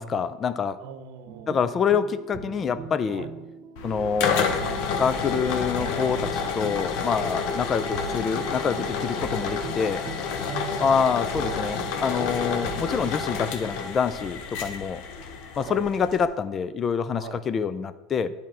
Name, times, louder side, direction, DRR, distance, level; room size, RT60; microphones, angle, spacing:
voice 1, 0.0-0.8 1.5-3.3 3.8-4.5 5.0-10.0 10.8-15.0 15.6-18.3, left 6 dB, 35° left, 13 dB, 0.4 m, -26 dB
voice 2, 0.8-1.6 3.1-3.3 10.4-11.0 15.5-15.9 17.2-17.4, right 9 dB, 70° right, 9 dB, 0.6 m, -40 dB
sound 1, 1.3-13.1, right 5 dB, 45° right, 1.0 m, -39 dB
sound 2, 3.8-16.3, left 5 dB, 65° left, 0.9 m, -30 dB
10.0 x 3.6 x 4.3 m, 1.1 s
hypercardioid pair, 95°, 0 cm